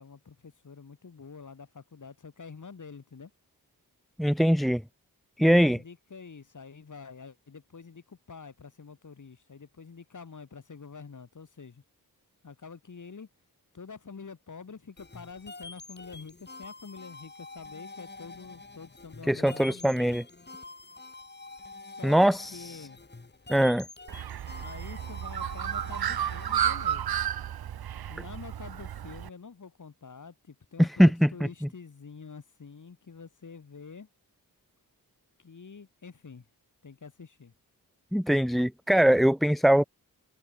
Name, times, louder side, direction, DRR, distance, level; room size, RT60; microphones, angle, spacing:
voice 1, 0.0-3.3 5.4-11.8 12.4-13.3 13.7-20.3 21.8-23.0 24.6-27.2 28.1-34.1 35.4-36.5 36.8-37.5, left 5 dB, 55° left, 7.6 m, -47 dB
voice 2, 4.2-4.8 5.4-5.8 19.3-20.2 22.0-22.5 23.5-23.9 30.8-31.3 38.1-39.8, equal, ahead, 0.6 m, -21 dB
sound 1, 15.0-27.0, left 3 dB, 30° left, 5.0 m, -47 dB
Bird, 24.1-29.3, right 10 dB, 80° right, 0.7 m, -32 dB
wide cardioid pair, 165°, 37 cm